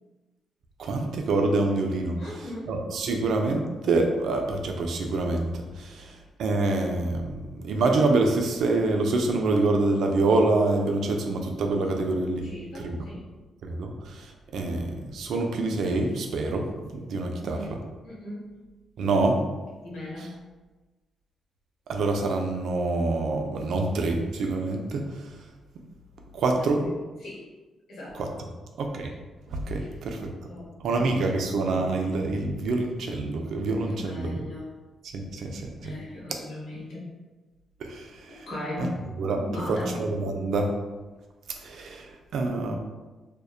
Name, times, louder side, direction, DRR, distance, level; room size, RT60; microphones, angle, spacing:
voice 1, 0.8-2.2 2.7-5.5 5.8-6.0 6.4-7.3 7.6-12.4 12.8-13.0 13.6-13.9 14.5-16.7 17.1-17.8 19.0-19.4 21.9-25.0 26.3-26.9 28.2-28.3 28.8-29.1 29.5-30.3 30.8-34.4 35.1-35.9 37.8-38.1 38.8-38.9 39.2-39.4 39.7-40.7 41.6-42.0 42.3-42.8, right 2 dB, 75° right, 3 dB, 0.3 m, -26 dB
voice 2, 2.2-2.7 6.0-6.1 12.4-13.3 17.4-18.6 19.8-20.4 26.6-27.0 27.2-27.5 27.9-28.4 29.7-29.9 30.5-31.3 33.9-34.7 35.8-37.1 38.3-39.0 39.4-40.0, left 1 dB, 80° left, -6 dB, 0.9 m, -38 dB
2.5 x 2.1 x 2.3 m, 1.2 s
cardioid pair, 65°, 0 cm